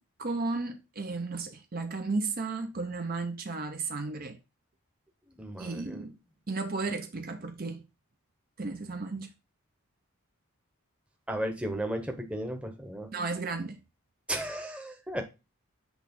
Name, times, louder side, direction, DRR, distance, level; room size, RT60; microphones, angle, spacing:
voice 1, 0.2-4.4 5.6-6.2 6.5-7.9 8.6-9.3 13.1-13.8, right 3 dB, 40° right, 0.6 m, -34 dB
voice 2, 5.4-6.0 11.3-13.1 14.3-15.2, right 1 dB, 5° right, 0.9 m, -34 dB
7.9 x 3.1 x 5.3 m
head